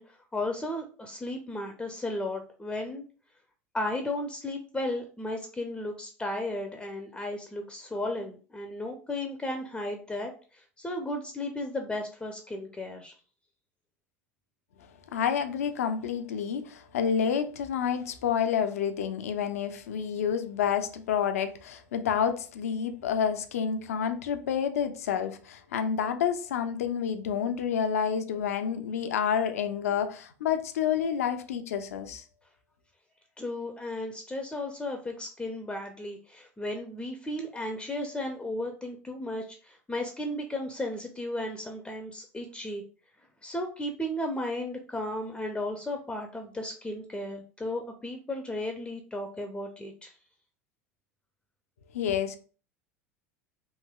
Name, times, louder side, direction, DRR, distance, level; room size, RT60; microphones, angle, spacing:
voice 1, 0.0-3.0 3.7-13.1 33.4-42.8 43.4-50.1, left 1 dB, 10° left, 0.4 m, -34 dB
voice 2, 15.1-32.2 51.9-52.4, left 8 dB, 70° left, 0.4 m, -29 dB
3.1 x 2.7 x 2.2 m
figure-of-eight pair, 75°, 8 cm